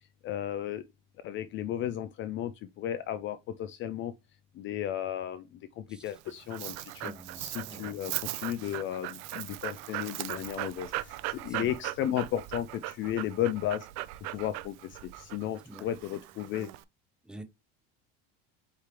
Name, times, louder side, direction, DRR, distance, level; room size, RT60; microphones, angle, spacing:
voice 1, 0.2-0.8 1.2-4.1 4.6-5.5 5.8-13.9 14.3-16.7, left 11 dB, 40° left, 0.4 m, -34 dB
Dog, 6.0-16.8, right 17 dB, 60° right, 0.5 m, -39 dB
voice 2, 7.0-7.9 11.6-11.7 15.7-15.9 17.3-17.4, right 1 dB, 5° right, 0.7 m, -46 dB
4.6 x 3.4 x 2.9 m
cardioid pair, 130°, 30 cm